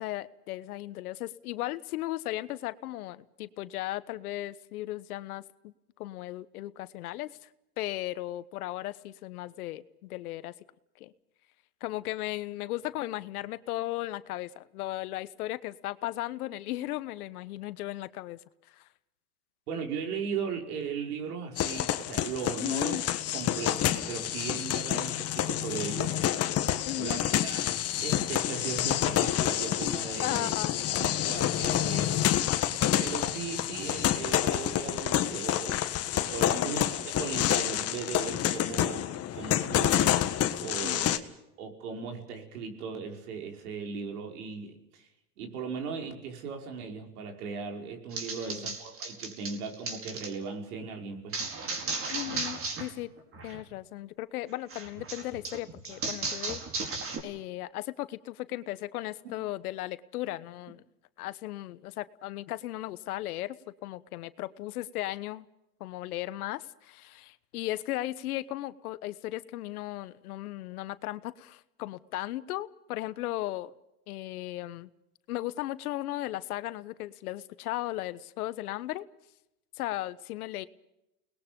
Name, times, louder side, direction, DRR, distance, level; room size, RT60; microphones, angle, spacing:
voice 1, 0.0-5.7 6.0-7.5 7.8-10.5 11.0-11.1 11.8-18.4 18.7-18.9 22.6-23.0 26.8-27.2 30.2-30.8 36.5-36.7 40.8-41.1 48.4-48.7 52.1-53.1 53.4-56.6 57.2-60.8 61.2-65.5 65.8-73.7 74.1-74.9 75.3-79.0 79.8-80.7, left 16 dB, 70° left, 15 dB, 1.2 m, -36 dB
voice 2, 19.7-23.0 23.3-26.1 27.0-27.8 28.0-30.5 31.0-32.2 33.0-35.8 36.1-39.0 39.3-40.2 40.6-41.1 41.6-45.1 45.4-51.4, right 6 dB, 75° right, 3 dB, 5.8 m, -37 dB
sound 1, 21.6-41.2, left 11 dB, 30° left, 1.6 m, -28 dB
sound 2, 48.1-50.3 51.3-52.9 53.2-53.6 54.7-57.2, right 3 dB, 30° right, 4.8 m, -35 dB
30.0 x 20.5 x 5.4 m, 0.87 s
hypercardioid pair, 115°, 46 cm